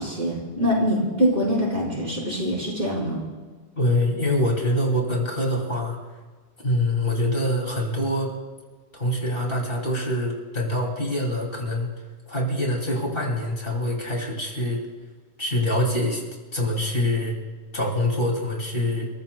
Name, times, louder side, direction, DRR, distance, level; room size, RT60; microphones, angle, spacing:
voice 1, 0.0-3.2, equal, 55° right, -4 dB, 5.1 m, -24 dB
voice 2, 3.8-6.0 6.6-8.3 8.9-11.9 12.3-14.8 15.4-16.2 16.5-17.3 17.7-19.1, left 1 dB, 55° left, -1 dB, 2.9 m, -25 dB
30.0 x 15.0 x 2.3 m, 1.4 s
omnidirectional pair, 1.2 m